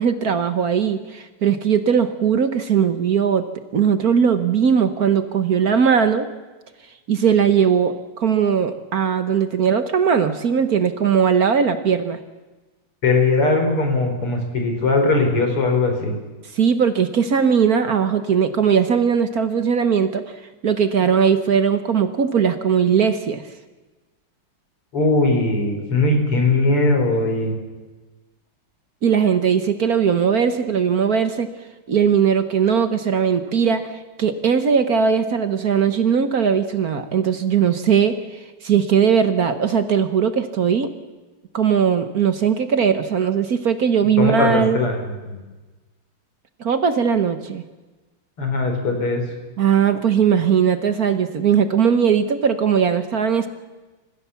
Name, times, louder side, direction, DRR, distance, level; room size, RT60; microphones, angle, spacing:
voice 1, 0.0-3.5 3.7-6.2 7.1-12.2 16.5-20.3 20.6-23.4 29.0-31.5 31.9-33.9 34.2-40.9 41.5-44.8 46.6-47.6 49.6-53.5, right 7 dB, 50° right, 10 dB, 1.4 m, -19 dB
voice 2, 13.0-16.2 24.9-27.6 44.2-45.4 48.4-49.2, left 2 dB, 90° left, 3 dB, 5.2 m, -20 dB
28.5 x 15.5 x 7.1 m, 1.2 s
omnidirectional pair, 2.4 m